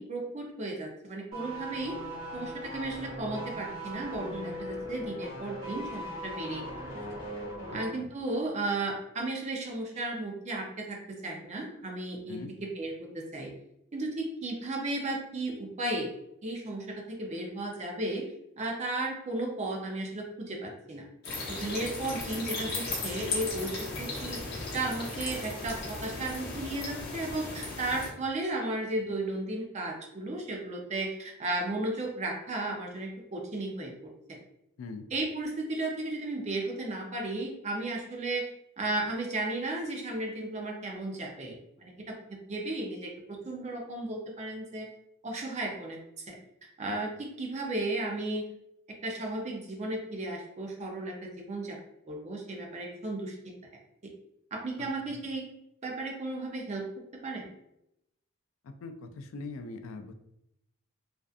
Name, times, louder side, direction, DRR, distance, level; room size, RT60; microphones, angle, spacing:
voice 1, 0.0-2.0 2.3-6.6 7.7-13.5 13.9-16.1 16.4-18.3 18.6-21.1 21.5-24.4 24.7-34.4 35.1-38.5 38.8-44.9 45.2-46.4 46.8-48.4 49.0-51.8 52.1-53.5 54.5-55.4 55.8-56.8 57.2-57.5, right 2 dB, 35° right, 0 dB, 0.5 m, -34 dB
sound 1, 1.3-8.0 8.3-8.4, equal, 55° right, 1.2 m, -39 dB
voice 2, 7.7-8.1 12.3-12.5 34.8-35.1 54.8-55.2 58.6-60.1, left 3 dB, 70° left, 7 dB, 0.3 m, -42 dB
sound 2, 21.2-28.1, left 3 dB, 50° left, 0.7 m, -36 dB
2.5 x 2.4 x 2.4 m, 0.82 s
head